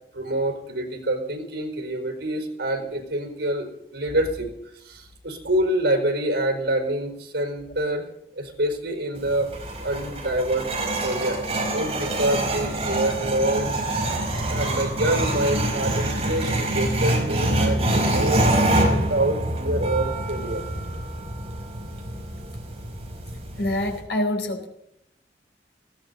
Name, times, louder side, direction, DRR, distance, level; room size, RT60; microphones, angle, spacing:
voice 1, 0.1-8.0 8.3-9.5 9.8-10.7 11.0-11.4 11.7-13.7 14.5-18.4 18.8-20.6, right 1 dB, 85° right, 4 dB, 4.7 m, -26 dB
sound 1, 9.2-24.0, right 1 dB, 35° right, 5.2 m, -25 dB
voice 2, 23.6-24.7, left 1 dB, 85° left, 4 dB, 4.5 m, -25 dB
20.0 x 16.5 x 4.1 m, 0.81 s
head